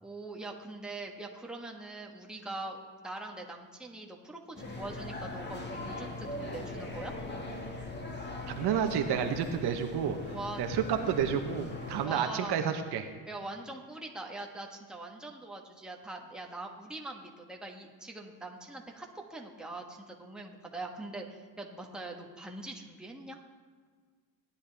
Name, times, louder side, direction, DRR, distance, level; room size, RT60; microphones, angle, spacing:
voice 1, 0.0-7.1 10.3-10.6 12.0-12.7 13.3-23.4, right 2 dB, ahead, 0 dB, 1.4 m, -42 dB
sound 1, 4.6-12.1, left 2 dB, 25° left, 1.9 m, -40 dB
voice 2, 8.5-13.1, right 8 dB, 60° right, 6 dB, 1.1 m, -30 dB
17.5 x 10.5 x 3.5 m, 1.5 s
cardioid pair, 120°, 45 cm